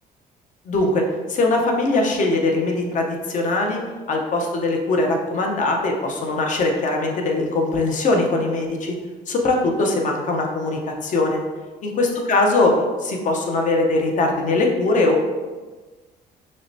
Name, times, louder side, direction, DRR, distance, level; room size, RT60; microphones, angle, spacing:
voice 1, 0.7-1.0 1.3-3.8 4.1-8.9 9.3-11.4 11.8-15.2, left 2 dB, 50° left, 1 dB, 0.7 m, -21 dB
6.1 x 2.1 x 2.7 m, 1.3 s
cardioid pair, 110°, 17 cm